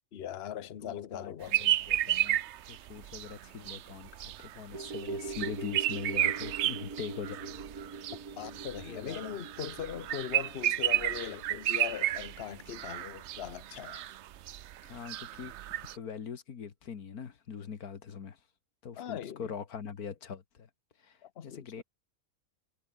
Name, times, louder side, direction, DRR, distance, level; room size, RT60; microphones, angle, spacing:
voice 1, 0.1-1.7 8.4-14.1 19.0-19.5 21.2-21.8, left 10 dB, 50° left, 1.1 m, -40 dB
voice 2, 0.8-2.4 2.7-7.6 8.9-9.4 14.8-15.5 15.8-18.4 18.8-20.7 21.0-21.8, left 7 dB, 85° left, 2.1 m, -42 dB
sound 1, 1.5-15.9, right 12 dB, 60° right, 0.8 m, -33 dB
sound 2, 4.7-13.2 13.5-13.6, right 4 dB, 85° right, 3.2 m, -43 dB
omnidirectional pair, 1.5 m